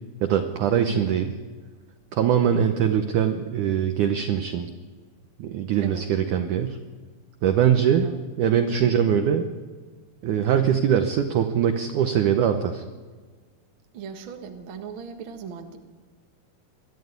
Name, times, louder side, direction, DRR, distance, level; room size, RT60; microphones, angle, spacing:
voice 1, 0.2-1.3 2.1-4.7 5.4-6.8 7.4-8.1 8.4-9.5 10.2-12.8, right 9 dB, 80° right, 7 dB, 1.7 m, -22 dB
voice 2, 0.8-1.1 5.8-6.1 7.9-8.2 8.8-9.1 13.9-15.8, right 7 dB, 65° right, 4 dB, 1.2 m, -38 dB
22.5 x 13.0 x 9.5 m, 1.5 s
omnidirectional pair, 4.9 m